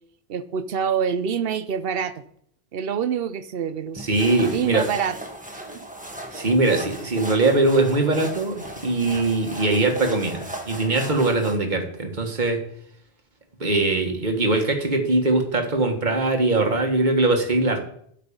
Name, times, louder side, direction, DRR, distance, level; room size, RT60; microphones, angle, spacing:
voice 1, 0.3-2.2 2.7-4.0 4.5-5.2 5.7-5.8, right 7 dB, 65° right, 13 dB, 0.9 m, -26 dB
sound 1, 4.0-11.6, right 1 dB, 10° right, 1.2 m, -37 dB
voice 2, 4.0-4.8 6.3-12.6 13.6-17.8, right 2 dB, 45° right, 4 dB, 1.6 m, -21 dB
8.5 x 5.9 x 7.1 m, 0.67 s
omnidirectional pair, 1.1 m